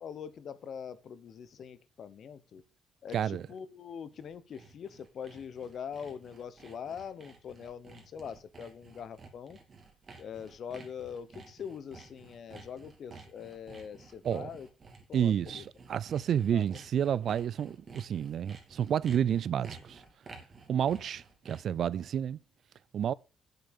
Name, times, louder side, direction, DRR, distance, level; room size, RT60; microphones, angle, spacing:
voice 1, 0.0-2.6 3.0-9.6 10.2-14.7 15.1-15.6 16.5-16.7, left 7 dB, 60° left, 0.9 m, -43 dB
voice 2, 3.1-3.4 14.2-14.5 15.1-20.0 20.7-22.4 22.9-23.1, right 9 dB, 65° right, 0.4 m, -30 dB
Sawing, 4.0-21.8, right 4 dB, 40° right, 2.7 m, -53 dB
8.0 x 6.8 x 6.7 m
cardioid pair, 90°, 0 cm